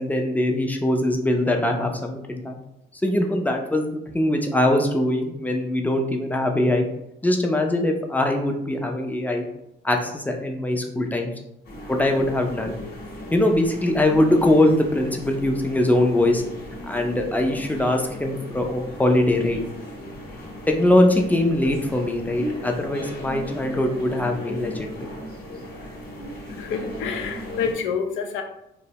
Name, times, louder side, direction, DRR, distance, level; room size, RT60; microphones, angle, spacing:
voice 1, 0.0-2.6 3.0-6.9 7.2-9.4 9.8-11.3 11.9-12.7 13.3-16.4 16.9-19.6 20.7-25.1, left 1 dB, 10° left, 3 dB, 0.4 m, -22 dB
sound 1, 11.6-27.7, left 1 dB, 55° left, 0.9 m, -36 dB
voice 2, 26.0-28.4, left 6 dB, 85° left, 5 dB, 0.4 m, -29 dB
2.6 x 2.0 x 2.8 m, 0.82 s
cardioid pair, 90°, 20 cm